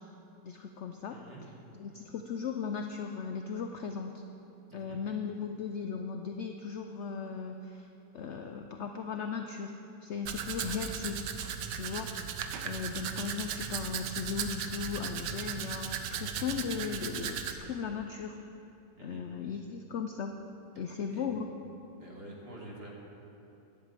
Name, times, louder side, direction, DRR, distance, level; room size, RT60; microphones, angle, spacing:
voice 1, 0.4-1.2 1.7-4.2 4.7-7.9 8.1-9.8 10.0-11.2 11.7-12.1 12.6-18.4 19.0-20.3 20.8-21.5, left 6 dB, 70° left, 5 dB, 0.6 m, -37 dB
voice 2, 1.1-1.4 4.7-5.0 19.0-19.2 20.7-21.5 22.0-22.9, right 1 dB, 35° right, -3 dB, 2.1 m, -48 dB
Domestic sounds home sounds, 10.3-17.5, right 8 dB, 80° right, 1.4 m, -37 dB
11.0 x 8.1 x 8.3 m, 2.9 s
omnidirectional pair, 1.9 m